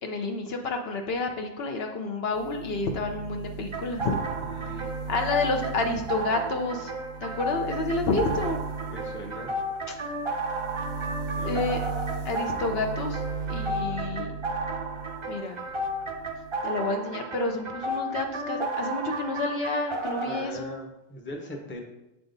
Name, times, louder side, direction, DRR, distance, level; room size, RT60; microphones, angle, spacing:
voice 1, 0.0-4.2 5.1-6.9 7.2-8.6 11.4-11.8 12.2-13.2 13.5-14.3 15.3-15.6 16.6-20.8, left 3 dB, 65° left, 4 dB, 0.8 m, -29 dB
sound 1, 2.3-15.3 15.6-16.6, right 5 dB, 75° right, 1.0 m, -37 dB
sound 2, 3.7-20.4, right 1 dB, 35° right, 0.5 m, -33 dB
voice 2, 4.4-4.9 8.9-9.6 11.4-11.7 20.2-21.8, equal, 15° left, 1 dB, 0.6 m, -40 dB
6.9 x 3.6 x 3.9 m, 0.91 s
omnidirectional pair, 1.2 m